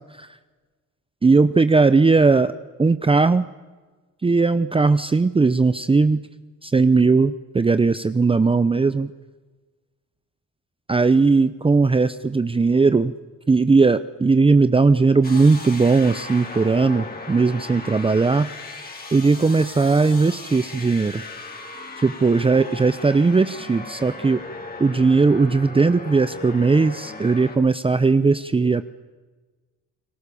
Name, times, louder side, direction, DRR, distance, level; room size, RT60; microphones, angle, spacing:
voice 1, 1.2-2.5 2.8-3.4 4.2-6.2 6.6-9.1 10.9-13.1 13.5-18.5 19.1-21.2 22.0-24.4 24.8-28.8, right 4 dB, 20° right, 12 dB, 0.8 m, -18 dB
sound 1, 15.2-27.6, left 3 dB, 30° left, 4.5 m, -37 dB
30.0 x 20.0 x 7.0 m, 1.3 s
cardioid pair, 90°, 30 cm